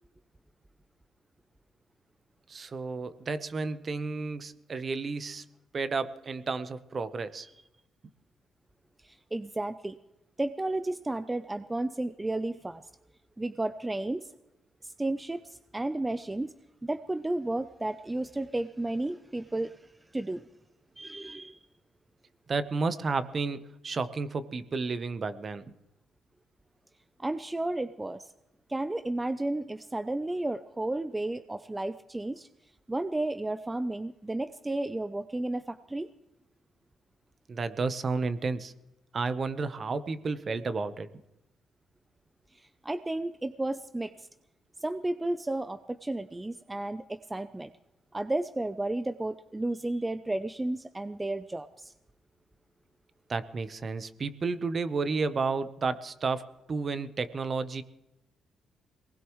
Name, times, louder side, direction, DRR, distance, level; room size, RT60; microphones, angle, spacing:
voice 1, 2.5-5.4 5.7-7.5 22.5-25.6 37.5-38.7 39.1-41.1 53.3-56.4 56.7-57.8, right 4 dB, 40° right, 12 dB, 0.9 m, -32 dB
voice 2, 9.0-10.0 10.4-12.8 13.4-14.3 14.8-16.5 16.8-20.5 21.0-21.6 27.2-28.3 28.7-32.5 32.9-36.1 42.5-44.3 44.8-47.7 48.1-51.9, right 2 dB, 15° right, 11 dB, 0.6 m, -33 dB
22.5 x 19.5 x 3.1 m, 0.91 s
cardioid pair, 90°, 0 cm